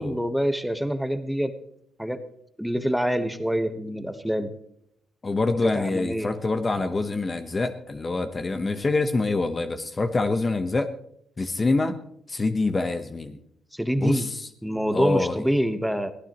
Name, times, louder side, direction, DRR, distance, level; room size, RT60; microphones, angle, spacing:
voice 1, 0.0-1.5 2.0-2.2 2.6-4.5 5.6-6.3 13.7-14.3 14.6-16.1, equal, ahead, 8 dB, 1.2 m, -26 dB
voice 2, 5.2-10.9 11.4-12.0 12.3-13.4 14.0-14.5 14.9-15.4, left 3 dB, 30° left, 9 dB, 1.1 m, -25 dB
23.0 x 15.5 x 3.1 m, 0.73 s
cardioid pair, 90°, 0 cm